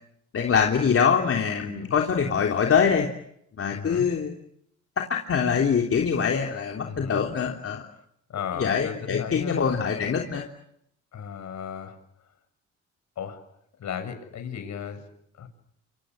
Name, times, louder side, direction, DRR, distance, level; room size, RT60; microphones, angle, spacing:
voice 1, 0.3-3.1 3.6-4.4 5.0-7.8 8.5-10.5, left 6 dB, 50° left, 1 dB, 3.5 m, -24 dB
voice 2, 3.7-4.1 6.8-7.2 8.3-9.6 11.1-12.0 13.2-13.4 13.8-15.0 15.4-15.5, left 8 dB, 65° left, 9 dB, 7.2 m, -35 dB
29.0 x 26.0 x 7.9 m, 0.74 s
cardioid pair, 90°, 30 cm